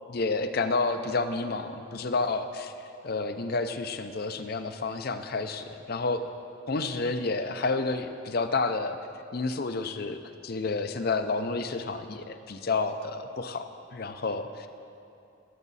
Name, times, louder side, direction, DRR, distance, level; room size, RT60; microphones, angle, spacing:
voice 1, 0.1-2.7 3.0-6.3 6.7-9.0 9.3-14.7, left 3 dB, 45° left, 9 dB, 0.5 m, -30 dB
18.0 x 7.3 x 4.1 m, 2.7 s
head